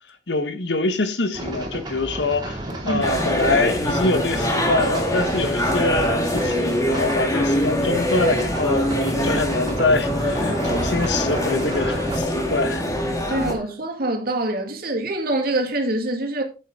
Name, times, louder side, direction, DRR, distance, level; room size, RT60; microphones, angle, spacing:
voice 1, 0.3-12.9, left 3 dB, 90° left, 1.3 m, -24 dB
sound 1, 1.3-12.2, right 1 dB, 25° right, 2.5 m, -32 dB
sound 2, 3.0-13.5, equal, 20° left, 2.0 m, -23 dB
voice 2, 13.3-16.4, right 1 dB, 60° right, 2.3 m, -25 dB
9.2 x 8.3 x 3.8 m
head